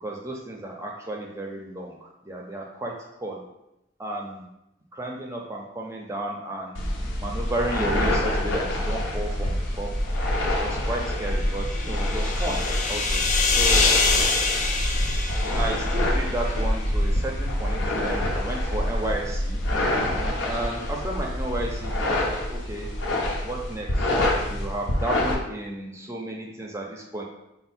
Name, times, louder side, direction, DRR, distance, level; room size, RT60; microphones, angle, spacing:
voice 1, 0.0-3.0 3.2-3.4 4.0-4.5 4.9-6.9 7.2-9.9 10.6-12.6 12.9-13.2 13.6-13.9 15.6-19.6 20.4-22.9 23.4-24.1 24.5-27.2, right 1 dB, 15° right, 0 dB, 0.5 m, -32 dB
sound 1, 6.7-25.3, left 1 dB, 85° left, 0.7 m, -26 dB
sound 2, 11.0-16.6, left 4 dB, 40° left, 0.4 m, -26 dB
4.4 x 2.1 x 4.2 m, 0.90 s
head